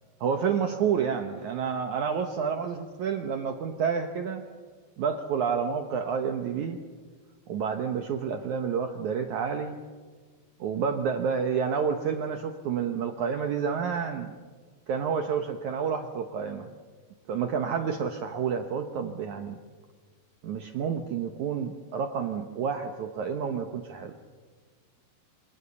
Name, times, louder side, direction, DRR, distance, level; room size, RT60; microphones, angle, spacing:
voice 1, 0.2-4.4 5.0-6.8 7.5-9.8 10.6-14.3 14.9-16.7 17.3-19.6 20.4-24.1, right 6 dB, 75° right, 6 dB, 1.7 m, -29 dB
27.5 x 24.5 x 7.0 m, 1.5 s
omnidirectional pair, 5.0 m